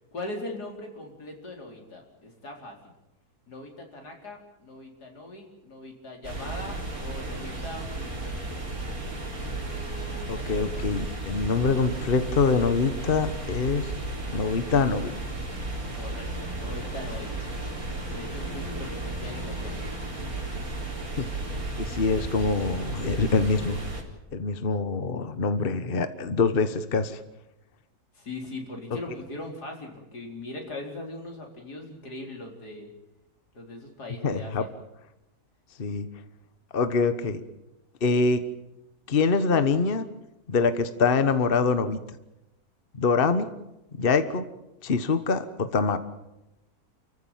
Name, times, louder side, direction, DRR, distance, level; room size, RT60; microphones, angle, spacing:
voice 1, 0.1-2.8 3.5-8.5 15.9-16.3 16.6-17.3 18.1-19.8 28.1-32.9 33.5-34.7, left 2 dB, 90° left, 1 dB, 4.9 m, -40 dB
sound 1, 6.2-24.0, right 2 dB, 65° right, 4.7 m, -34 dB
sound 2, 8.9-21.8, left 1 dB, 70° left, 2.7 m, -46 dB
voice 2, 10.3-13.9 14.3-15.1 21.2-21.3 21.8-23.8 24.3-27.2 34.2-34.7 35.8-36.1 36.7-37.4 38.0-38.4 39.1-40.1 40.5-42.0 42.9-43.5 44.0-44.4 44.8-46.0, left 4 dB, 40° left, 11 dB, 1.3 m, -24 dB
29.0 x 15.0 x 9.0 m, 0.94 s
omnidirectional pair, 1.7 m